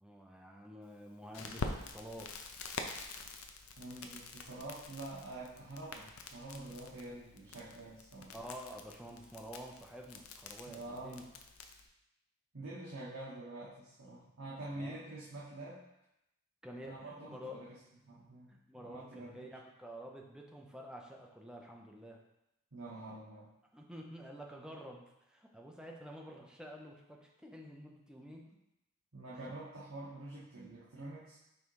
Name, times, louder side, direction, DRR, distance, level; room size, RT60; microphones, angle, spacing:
voice 1, 0.0-2.3 8.3-11.2 14.7-15.0 16.6-17.6 18.5-22.2 23.7-28.5, equal, 5° right, 0 dB, 0.6 m, -49 dB
Crackle, 1.3-11.9, left 3 dB, 85° left, 0.6 m, -46 dB
voice 2, 3.8-8.3 10.7-11.3 12.5-15.8 16.9-17.8 18.0-19.6 22.7-23.5 29.1-31.4, right 2 dB, 70° right, -8 dB, 1.3 m, -46 dB
5.3 x 3.9 x 4.7 m, 0.87 s
head